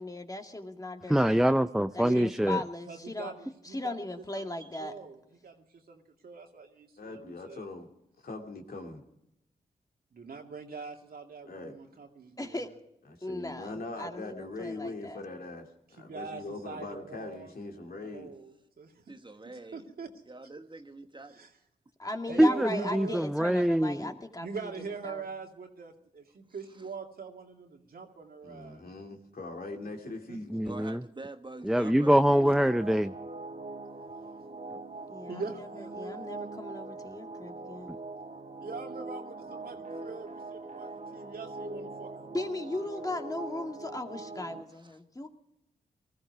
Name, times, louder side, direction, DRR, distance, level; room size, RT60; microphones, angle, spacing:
voice 1, 0.0-1.4 1.9-3.3 3.6-4.9 12.4-12.7 13.2-15.2 22.0-24.7 25.0-25.3 35.1-37.9 42.3-45.3, left 2 dB, 20° left, 2.2 m, -38 dB
voice 2, 1.1-2.6 22.4-24.1 30.5-31.0 31.6-33.1, equal, 5° right, 0.5 m, -24 dB
voice 3, 2.9-3.9 4.3-4.5 4.8-7.7 10.1-12.8 16.1-18.9 19.7-20.1 21.3-21.5 22.3-23.2 24.4-28.9 30.0-30.6 35.3-36.1 38.6-42.5 43.1-43.2, right 5 dB, 65° right, 2.4 m, -43 dB
voice 4, 7.0-7.9 8.2-9.0 11.5-11.7 13.3-18.3 28.4-30.5, left 2 dB, 65° left, 2.6 m, -41 dB
voice 5, 19.1-19.8 20.3-21.4 22.3-22.4 26.8-26.9 30.6-32.2 44.7-45.0, right 2 dB, 30° right, 1.2 m, -46 dB
sound 1, 32.2-44.6, right 2 dB, 50° right, 1.7 m, -42 dB
19.5 x 14.0 x 4.7 m
supercardioid pair, 40°, 16 cm